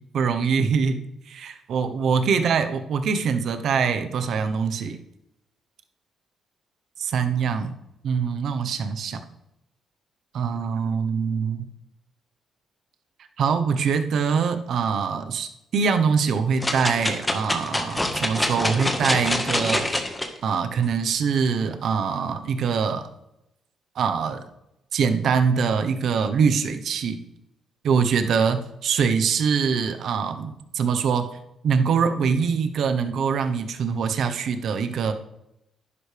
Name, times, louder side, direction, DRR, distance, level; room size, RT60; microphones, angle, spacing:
voice 1, 0.1-5.0 7.0-7.7 8.0-9.2 10.3-11.6 13.4-19.9 20.4-23.1 23.9-24.4 24.9-27.2 27.8-31.3 31.6-35.1, right 6 dB, 65° right, 8 dB, 1.1 m, -23 dB
sound 1, 16.6-20.3 20.8-20.9, left 1 dB, 15° left, 1.6 m, -25 dB
11.0 x 10.5 x 3.5 m, 0.84 s
cardioid pair, 90°, 0 cm